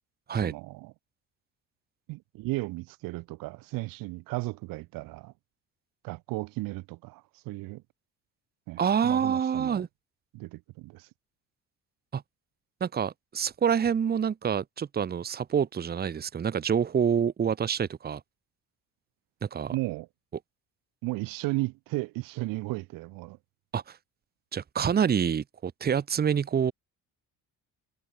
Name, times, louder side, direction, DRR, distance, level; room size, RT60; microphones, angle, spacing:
voice 1, 0.4-0.9 2.1-5.3 6.0-7.8 8.7-9.9 10.3-11.1 19.7-20.1 21.0-23.4, right 21 dB, 90° right, 1.2 m, -35 dB
voice 2, 8.8-9.9 12.1-12.2 12.8-18.2 19.4-19.7 23.7-24.0 24.5-26.7, right 7 dB, 30° right, 1.1 m, -27 dB
cardioid pair, 125°, 33 cm